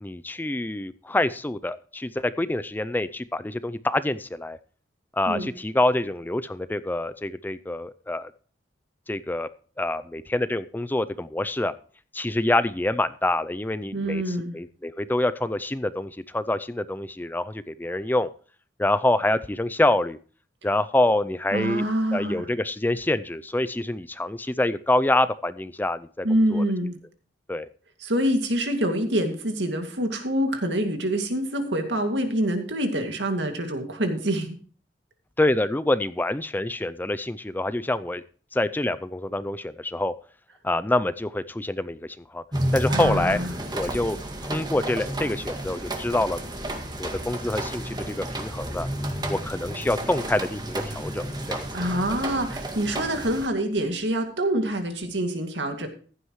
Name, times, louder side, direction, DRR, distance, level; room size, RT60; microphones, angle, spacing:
voice 1, 0.0-4.6 5.1-8.3 9.1-9.5 9.8-11.7 12.1-14.2 14.5-18.3 18.8-20.2 20.6-21.8 22.1-26.6 27.5-27.7 35.4-38.2 38.5-40.1 40.6-42.4 42.7-43.4 43.7-44.2 44.4-46.4 47.0-48.9 49.3-51.7, left 1 dB, 10° left, 14 dB, 0.4 m, -26 dB
voice 2, 13.9-14.6 21.5-22.5 26.2-27.0 28.0-34.6 42.9-43.5 51.7-55.9, right 1 dB, 75° right, 5 dB, 2.3 m, -26 dB
sound 1, 42.5-53.5, right 1 dB, 25° right, 1.8 m, -31 dB
15.0 x 11.5 x 3.1 m, 0.41 s
head